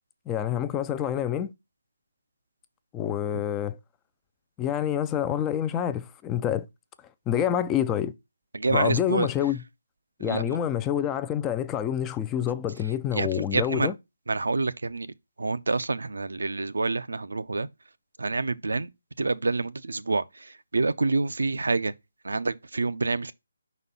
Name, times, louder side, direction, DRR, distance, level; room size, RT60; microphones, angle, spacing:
voice 1, 0.3-1.5 2.9-3.8 4.6-6.7 7.3-8.1 8.7-9.6 10.2-13.9, left 10 dB, 10° left, 0.3 m, -27 dB
voice 2, 8.5-9.3 10.2-10.6 13.1-13.9 14.3-15.1 15.4-17.7 18.2-18.9 19.2-21.9 22.2-23.3, right 3 dB, 85° right, 0.6 m, -27 dB
5.3 x 4.1 x 5.4 m
hypercardioid pair, 165°, 0 cm